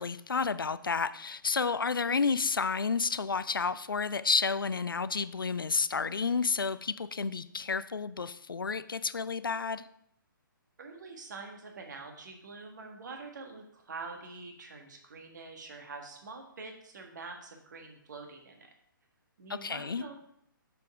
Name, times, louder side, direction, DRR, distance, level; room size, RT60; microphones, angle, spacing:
voice 1, 0.0-9.9 19.5-20.0, left 5 dB, 75° left, 0.4 m, -31 dB
voice 2, 10.8-18.7 19.4-20.2, right 4 dB, 55° right, 1.6 m, -45 dB
6.8 x 5.2 x 4.8 m
figure-of-eight pair, 130°, 12 cm